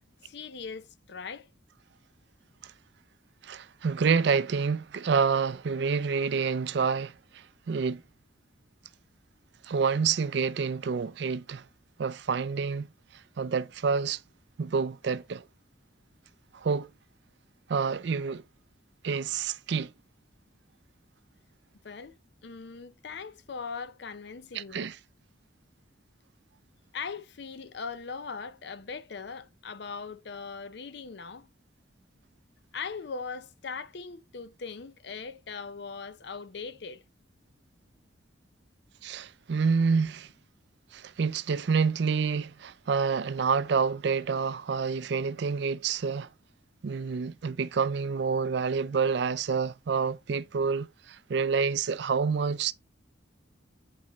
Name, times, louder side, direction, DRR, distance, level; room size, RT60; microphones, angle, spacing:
voice 1, 0.2-1.5 21.8-22.2 22.4-24.9 26.9-31.5 32.7-37.0, left 5 dB, 55° left, 0.5 m, -40 dB
voice 2, 3.4-8.0 9.6-11.6 12.0-12.9 13.4-14.2 14.6-15.4 16.5-16.9 17.7-18.4 19.0-19.9 24.5-25.0 39.0-40.3 40.9-46.3 46.8-52.7, right 5 dB, 60° right, 0.4 m, -28 dB
8.5 x 4.1 x 3.0 m
head